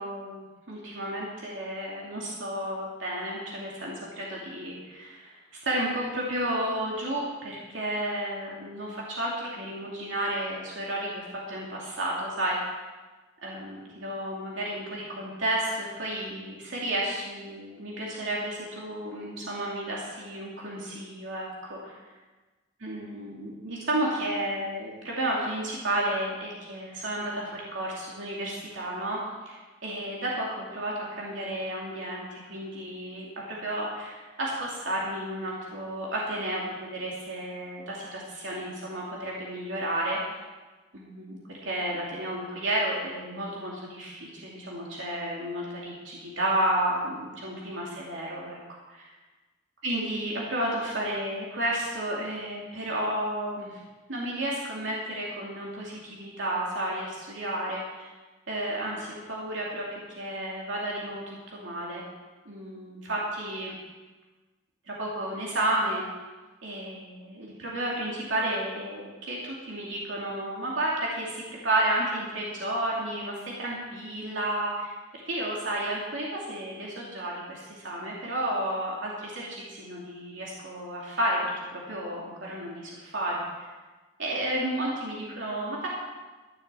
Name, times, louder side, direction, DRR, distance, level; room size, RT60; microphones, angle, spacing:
voice 1, 0.0-5.4 5.6-12.8 13.4-21.9 22.8-40.2 40.9-48.6 48.9-49.1 49.8-53.8 54.1-58.1 58.5-62.0 62.4-63.7 64.9-66.1 66.6-81.4 81.7-83.7 84.2-85.9, right 1 dB, 90° right, -4 dB, 2.6 m, -32 dB
14.0 x 7.4 x 7.5 m, 1.3 s
head